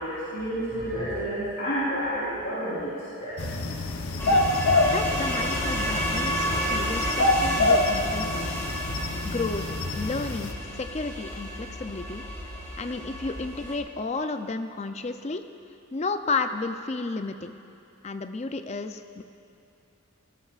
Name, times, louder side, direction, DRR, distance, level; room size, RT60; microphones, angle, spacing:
voice 1, 0.0-2.9 3.2-3.4, equal, 50° left, -12 dB, 3.8 m, -30 dB
sound 1, 3.4-10.5, left 2 dB, 85° left, 0.9 m, -26 dB
sound 2, 4.2-13.8, equal, 10° left, 1.8 m, -31 dB
voice 2, 4.8-8.5 9.2-12.2 12.8-15.4 15.9-17.5 18.0-19.2, left 3 dB, 30° left, 8 dB, 0.4 m, -32 dB
20.5 x 17.0 x 2.4 m, 2.8 s
head